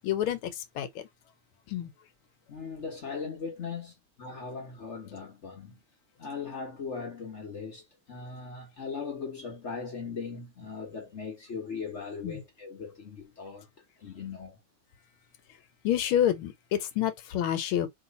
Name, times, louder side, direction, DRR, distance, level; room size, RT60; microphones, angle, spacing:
voice 1, 0.0-1.0 1.7-1.9 12.2-12.4 15.8-17.9, left 11 dB, 75° left, 1.5 m, -28 dB
voice 2, 2.5-5.8 6.2-13.7 14.0-14.6, left 5 dB, 55° left, 0.8 m, -39 dB
3.1 x 3.0 x 3.9 m
omnidirectional pair, 2.4 m